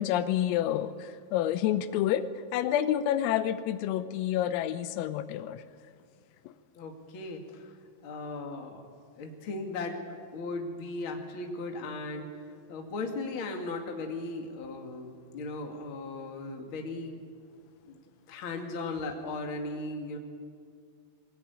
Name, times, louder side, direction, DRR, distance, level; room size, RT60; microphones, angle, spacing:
voice 1, 0.0-5.6, left 11 dB, 85° left, 12 dB, 3.5 m, -29 dB
voice 2, 6.8-7.4 8.0-8.9 9.2-10.0 10.3-12.3 12.7-17.2 17.9-18.0 18.3-20.2, left 3 dB, 40° left, 2 dB, 1.9 m, -37 dB
22.5 x 19.0 x 9.5 m, 2.2 s
omnidirectional pair, 6.0 m